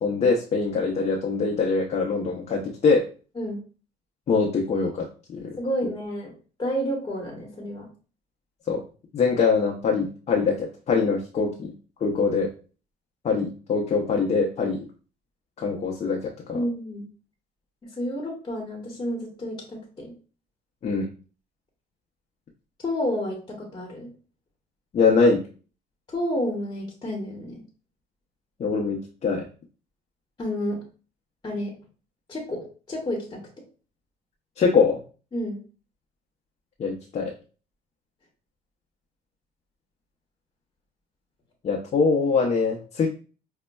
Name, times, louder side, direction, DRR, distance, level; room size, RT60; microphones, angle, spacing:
voice 1, 0.0-3.0 4.3-5.1 5.4-5.6 8.7-8.8 9.1-11.7 12.0-12.5 13.2-14.8 15.6-16.6 20.8-21.1 24.9-25.4 28.6-29.5 34.6-35.0 36.8-37.3 41.6-43.1, left 4 dB, 40° left, -1 dB, 0.6 m, -23 dB
voice 2, 5.6-6.3 6.6-7.9 16.5-17.1 17.9-20.1 22.8-24.1 26.1-27.6 30.4-30.8 31.4-31.8 32.3-33.4 35.3-35.6, equal, 25° left, -1 dB, 1.0 m, -30 dB
5.1 x 2.1 x 2.2 m, 0.37 s
cardioid pair, 110°, 17 cm